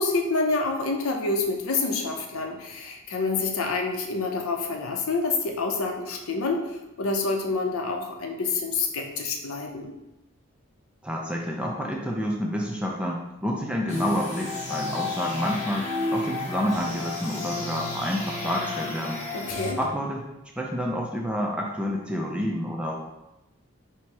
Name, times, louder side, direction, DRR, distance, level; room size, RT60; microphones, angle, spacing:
voice 1, 0.0-6.6 7.0-9.9 19.3-19.8, left 3 dB, 75° left, 2 dB, 0.6 m, -27 dB
voice 2, 11.0-19.2 19.8-20.2 20.6-22.9, equal, 5° right, -1 dB, 0.4 m, -29 dB
sound 1, 13.9-19.7, left 2 dB, 30° left, 0.8 m, -32 dB
4.4 x 2.0 x 4.5 m, 0.92 s
head